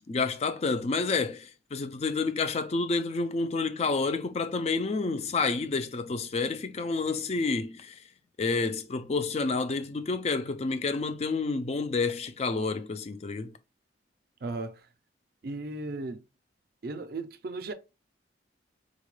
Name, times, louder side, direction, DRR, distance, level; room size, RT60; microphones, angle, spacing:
voice 1, 0.1-8.0 8.4-13.5, left 4 dB, 35° left, 0.3 m, -29 dB
voice 2, 14.4-14.9 15.4-16.2 16.8-17.7, right 2 dB, 55° right, 0.4 m, -36 dB
4.0 x 2.2 x 3.1 m
head